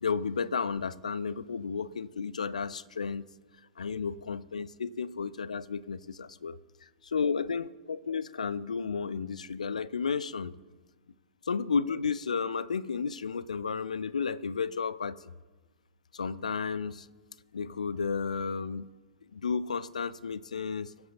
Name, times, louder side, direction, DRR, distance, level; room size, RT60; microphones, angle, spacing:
voice 1, 0.0-3.3 3.8-6.6 7.0-10.5 11.5-15.2 16.1-17.1 17.5-18.9 19.3-20.9, left 5 dB, 75° left, 0.4 m, -32 dB
23.5 x 8.0 x 4.0 m
figure-of-eight pair, 100°, 4 cm